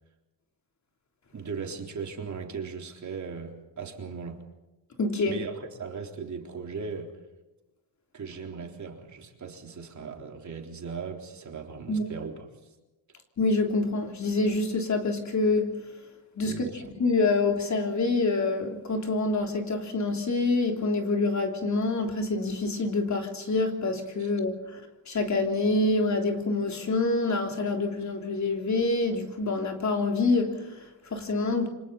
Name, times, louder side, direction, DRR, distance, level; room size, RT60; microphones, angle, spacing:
voice 1, 1.3-4.4 5.3-7.2 8.1-12.4 16.4-16.8 24.2-24.3, right 5 dB, 40° right, 3.8 m, -38 dB
voice 2, 5.0-5.4 11.9-12.1 13.4-15.8 16.4-16.7 17.0-24.8 25.1-31.7, left 3 dB, 40° left, 3.5 m, -26 dB
29.0 x 25.5 x 4.2 m
cardioid pair, 120°, 42 cm